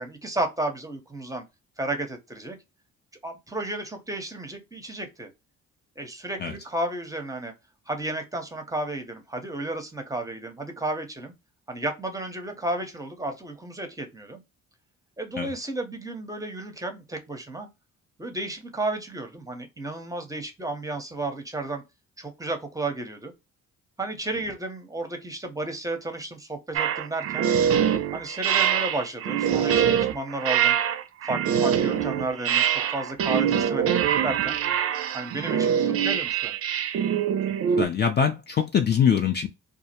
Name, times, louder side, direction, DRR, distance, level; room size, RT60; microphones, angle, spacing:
voice 1, 0.0-1.4 1.8-2.6 3.2-5.3 6.0-7.5 7.9-11.3 11.7-14.4 15.2-17.7 18.2-21.8 22.2-23.3 24.0-27.5 28.1-30.8 31.2-34.6 35.1-36.6, right 2 dB, 10° right, 0.7 m, -32 dB
sound 1, 26.7-37.9, right 9 dB, 50° right, 0.4 m, -24 dB
voice 2, 37.8-39.5, left 7 dB, 35° left, 0.4 m, -23 dB
2.3 x 2.0 x 2.7 m
cardioid pair, 90°, 30 cm